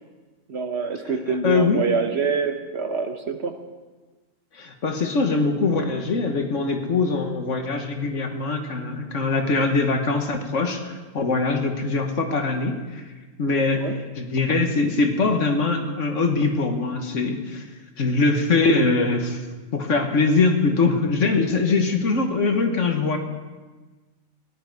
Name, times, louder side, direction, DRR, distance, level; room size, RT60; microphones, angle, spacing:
voice 1, 0.5-3.6 13.7-13.9, right 5 dB, 55° right, 7 dB, 1.1 m, -25 dB
voice 2, 1.3-1.9 4.5-13.0 13.4-17.6 18.0-19.4 19.7-23.2, left 3 dB, 60° left, 5 dB, 1.6 m, -22 dB
16.5 x 11.5 x 4.7 m, 1.3 s
omnidirectional pair, 1.5 m